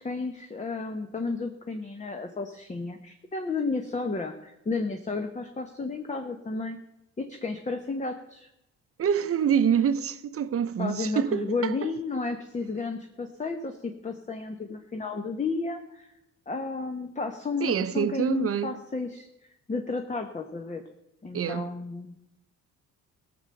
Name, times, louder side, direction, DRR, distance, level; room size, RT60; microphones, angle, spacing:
voice 1, 0.0-6.8 7.2-8.5 10.8-16.1 16.5-19.3 19.7-20.8 21.2-22.2, left 3 dB, 25° left, 1.2 m, -32 dB
voice 2, 9.0-11.9 17.6-18.7 21.3-21.7, right 8 dB, 50° right, 0.8 m, -26 dB
16.0 x 7.0 x 6.6 m
cardioid pair, 90°, 30 cm